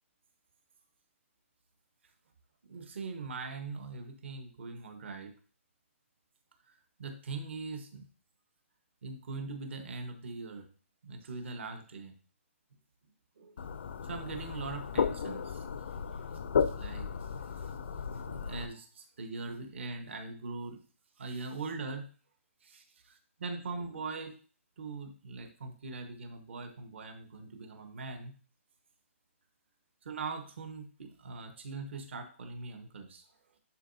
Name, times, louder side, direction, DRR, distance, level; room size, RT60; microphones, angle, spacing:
voice 1, 2.7-5.3 7.0-8.0 9.0-10.7 11.0-12.1 13.4-13.6 14.0-15.7 16.7-17.1 18.2-20.8 21.2-22.1 22.6-24.3 24.8-28.3 30.0-33.2, right 3 dB, 55° right, 5 dB, 1.3 m, -41 dB
sound 1, 13.6-18.7, left 6 dB, 55° left, 0.4 m, -34 dB
10.0 x 3.8 x 2.7 m, 0.40 s
hypercardioid pair, 175°, 7 cm